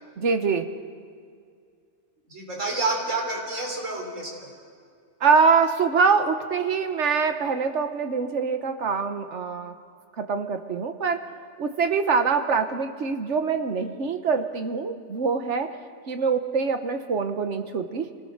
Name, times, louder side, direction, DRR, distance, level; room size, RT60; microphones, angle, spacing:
voice 1, 0.2-0.7 5.2-9.7 10.2-11.2 11.6-15.7 16.1-18.1, right 5 dB, 65° right, 7 dB, 1.4 m, -24 dB
voice 2, 2.3-4.5, right 2 dB, 85° right, 0 dB, 3.9 m, -29 dB
26.5 x 19.0 x 6.5 m, 2.2 s
omnidirectional pair, 1.3 m